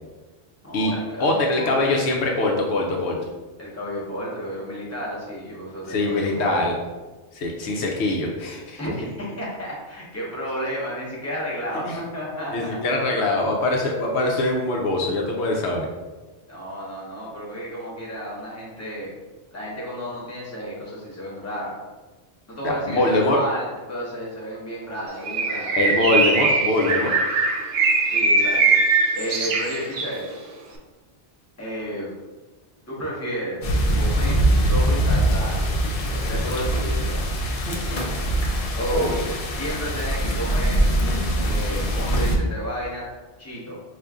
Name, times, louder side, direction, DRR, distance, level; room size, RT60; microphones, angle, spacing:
voice 1, 0.6-1.8 3.6-6.6 8.8-12.8 16.5-19.2 19.5-21.8 22.5-25.8 28.1-28.8 29.1-30.3 31.6-32.1 32.9-33.6 34.0-35.7 36.1-37.2 37.6-38.0 38.6-39.1 39.5-40.8 41.4-43.1 43.4-43.8, equal, 15° left, -6 dB, 0.9 m, -32 dB
voice 2, 1.2-3.2 5.9-6.7 7.3-8.8 11.8-12.0 12.5-15.9 22.6-23.4 25.8-27.1 38.9-39.1, left 2 dB, 80° left, 0 dB, 0.9 m, -23 dB
Bird, 25.3-30.2, right 4 dB, 60° right, 0.6 m, -21 dB
sound 1, 33.6-42.4, right 1 dB, 60° left, 0.4 m, -22 dB
5.0 x 2.5 x 2.3 m, 1.2 s
omnidirectional pair, 1.1 m